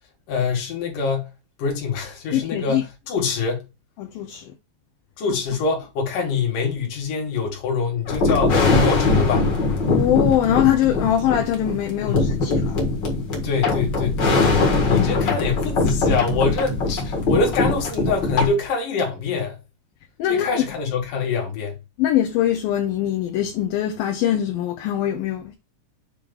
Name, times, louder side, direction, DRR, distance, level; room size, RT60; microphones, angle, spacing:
voice 1, 0.3-1.3 1.6-3.7 5.2-9.5 12.0-12.1 13.4-14.2 14.8-19.6 20.3-21.8, left 4 dB, 65° left, 3.4 m, -25 dB
voice 2, 2.3-2.8 4.0-4.5 9.9-12.8 14.9-15.4 20.2-20.6 22.0-25.5, left 11 dB, 80° left, 2.7 m, -22 dB
sound 1, 8.1-18.5, left 3 dB, 40° left, 1.8 m, -21 dB
7.6 x 3.1 x 5.3 m
omnidirectional pair, 4.2 m